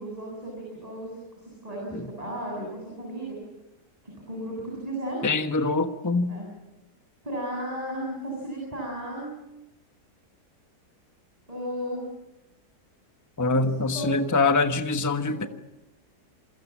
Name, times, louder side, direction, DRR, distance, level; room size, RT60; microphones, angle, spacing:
voice 1, 0.0-3.4 4.0-5.2 6.3-6.5 7.2-9.3 11.5-12.0 13.5-14.1 15.3-15.5, right 1 dB, 20° right, 7.8 m, -34 dB
voice 2, 5.2-6.4 13.4-15.5, left 3 dB, 15° left, 1.1 m, -24 dB
28.0 x 24.0 x 7.4 m
omnidirectional pair, 1.7 m